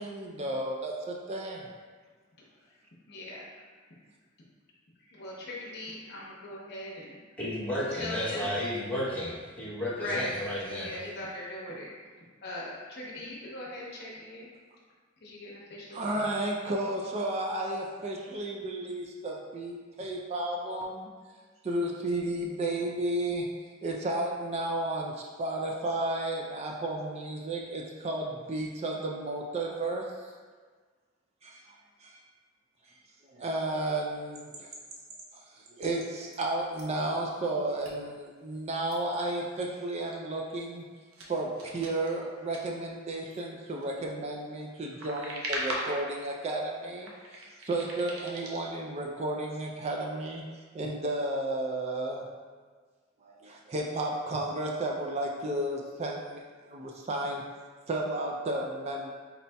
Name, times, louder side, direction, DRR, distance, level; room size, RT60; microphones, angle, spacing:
voice 1, 0.0-1.7 15.9-21.1 21.6-23.5 23.8-30.1 31.4-32.2 33.3-34.7 35.3-40.8 41.3-50.4 50.7-52.3 53.2-57.4 57.9-59.1, right 1 dB, 30° right, 0 dB, 0.4 m, -33 dB
voice 2, 3.1-3.5 3.9-4.0 5.0-7.2 8.0-8.5 10.0-11.9 12.4-14.5 15.2-16.0 16.2-16.6, left 1 dB, 55° left, -5 dB, 0.9 m, -40 dB
voice 3, 7.4-11.0, left 1 dB, 5° left, -8 dB, 0.8 m, -33 dB
sound 1, 34.3-36.4 36.7-37.1 37.8-37.9 38.3-38.4 38.9-39.0 40.0-40.2 40.6-40.8 41.1-42.7 43.3-43.9 44.6-46.0 46.4-46.6 46.9-48.7, right 1 dB, 75° right, 0.7 m, -41 dB
4.1 x 4.0 x 2.2 m, 1.5 s
head